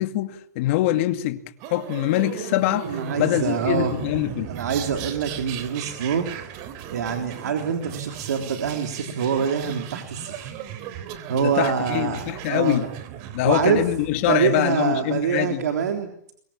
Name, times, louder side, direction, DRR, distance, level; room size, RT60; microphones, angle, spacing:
voice 1, 0.0-1.4 1.7-4.5 11.3-12.9 13.3-15.6, left 15 dB, 50° left, 2.3 m, -24 dB
sound 1, 1.6-14.3, right 9 dB, 40° right, 3.5 m, -37 dB
voice 2, 2.9-3.9 4.5-6.5 6.9-10.5 11.3-12.8 13.4-13.9 14.3-16.1, right 7 dB, 85° right, 3.6 m, -25 dB
24.0 x 23.5 x 8.7 m
hypercardioid pair, 140°, 9 cm